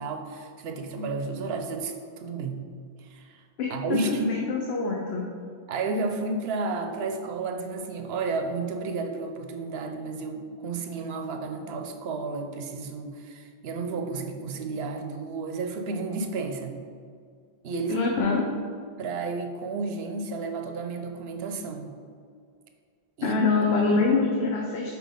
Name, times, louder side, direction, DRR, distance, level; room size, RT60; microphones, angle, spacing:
voice 1, 0.0-2.6 3.0-3.4 3.7-4.4 5.7-16.8 17.6-18.0 19.0-21.9 23.2-23.7, right 3 dB, 75° right, 5 dB, 0.8 m, -32 dB
voice 2, 4.1-5.3 17.9-18.4 23.2-25.0, left 4 dB, 75° left, 0 dB, 0.9 m, -25 dB
5.9 x 4.5 x 3.5 m, 2.1 s
omnidirectional pair, 1.1 m